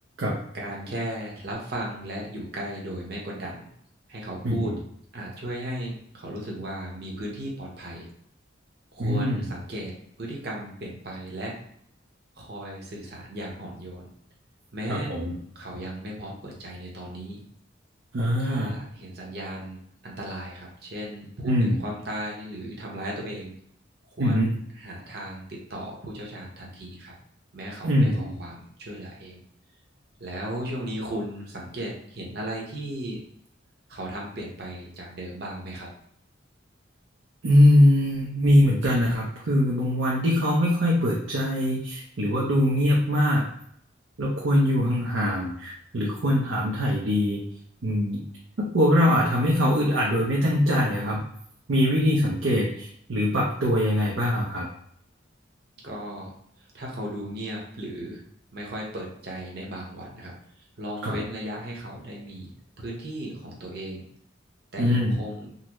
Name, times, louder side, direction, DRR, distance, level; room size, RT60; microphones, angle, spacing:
voice 1, 0.6-3.6 4.1-4.7 5.1-8.1 8.9-11.6 12.4-14.1 14.7-15.1 15.5-17.4 18.4-23.5 24.2-25.4 25.7-27.1 27.5-29.4 30.2-33.2 33.9-35.9 55.8-56.3 56.7-58.2 58.5-60.3 60.8-64.0 64.7-65.5, right 1 dB, 55° right, -2 dB, 0.9 m, -36 dB
voice 2, 9.0-9.5 14.9-15.4 18.1-18.7 21.4-21.8 24.2-24.5 27.8-28.4 37.4-43.4 44.2-47.4 47.8-48.2 48.6-51.2 51.7-54.7 61.0-61.2 64.8-65.2, equal, 75° right, -4 dB, 0.6 m, -22 dB
3.8 x 2.1 x 3.0 m, 0.68 s
head